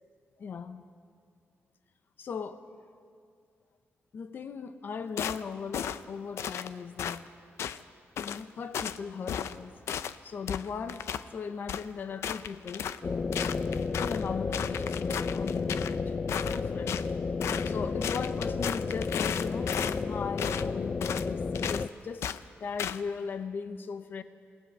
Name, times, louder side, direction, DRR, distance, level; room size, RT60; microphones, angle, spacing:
voice 1, 0.4-0.8 2.2-2.6 4.1-7.3 8.2-9.7 10.2-11.0 11.3-13.3 14.0-17.0 17.6-19.7 20.1-22.3 22.6-24.2, left 5 dB, 50° left, 10 dB, 0.8 m, -38 dB
sound 1, 5.2-5.4 5.7-6.0 6.4-6.7 7.0-7.2 7.6-7.8 8.2-8.4 8.7-9.0 9.3-9.6 9.9-10.1 10.5-11.2 11.7-11.8 12.2-13.0 13.3-14.2 14.5-15.9 16.3-17.1 17.4-17.7 18.0-20.0 20.4-20.7 21.0-21.3 21.5-21.8 22.2-22.4 22.8-23.0, left 9 dB, 85° left, 0.6 m, -34 dB
sound 2, 13.0-21.9, left 4 dB, 30° left, 0.4 m, -32 dB
28.0 x 18.0 x 5.6 m, 2.3 s
wide cardioid pair, 150°, 4 cm